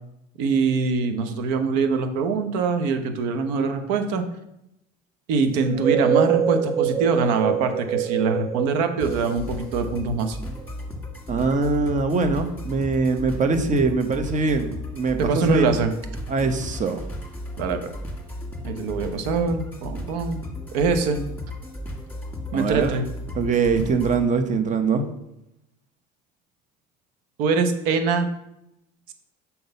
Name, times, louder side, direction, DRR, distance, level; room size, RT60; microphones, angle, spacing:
voice 1, 0.4-4.2 5.3-10.4 15.2-15.9 17.6-17.9 18.6-20.4 20.7-21.2 22.5-23.0 27.4-28.3 29.1-29.2, right 4 dB, 75° right, 8 dB, 0.8 m, -23 dB
sound 1, 5.6-10.2, right 9 dB, 15° right, 0.4 m, -24 dB
sound 2, 9.0-24.2, left 1 dB, 10° left, 1.7 m, -35 dB
voice 2, 11.3-15.7 16.3-17.1 22.5-23.0 23.4-25.0, right 4 dB, 35° right, 8 dB, 0.9 m, -22 dB
5.7 x 3.9 x 5.3 m, 0.85 s
supercardioid pair, 80°, 21 cm